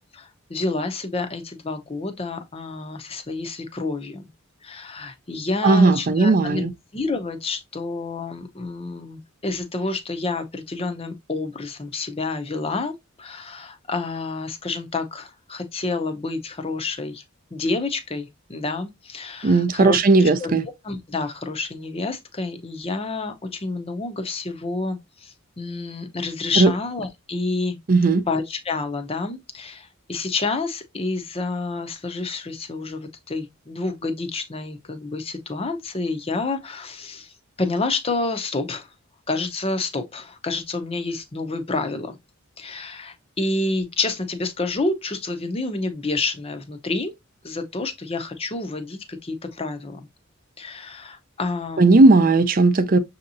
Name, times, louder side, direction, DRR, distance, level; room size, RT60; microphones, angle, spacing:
voice 1, 0.1-4.3 4.6-6.6 6.9-17.2 17.5-20.5 20.8-27.8 28.3-38.9 39.3-42.2 42.6-47.1 47.4-50.1 50.6-52.2, left 3 dB, 30° left, 0.7 m, -29 dB
voice 2, 5.6-6.7 19.4-20.6 26.6-26.7 27.9-28.2 51.8-53.0, right 3 dB, 40° right, 0.5 m, -16 dB
6.4 x 2.8 x 2.6 m
head